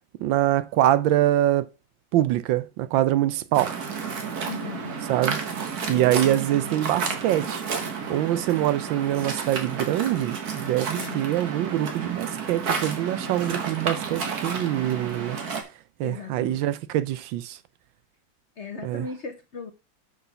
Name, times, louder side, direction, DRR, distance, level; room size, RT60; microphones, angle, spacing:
voice 1, 0.2-1.7 2.1-3.8 5.1-5.4 5.9-7.6 8.1-15.4 16.0-17.6 18.8-19.1, right 13 dB, 80° right, 1.3 m, -24 dB
Waves surf, 3.5-15.6, right 5 dB, 55° right, 1.7 m, -31 dB
voice 2, 4.4-5.0 5.9-6.1 11.0-11.3 16.0-16.7 18.6-19.7, left 5 dB, 50° left, 0.9 m, -37 dB
6.4 x 4.9 x 5.6 m
omnidirectional pair, 2.1 m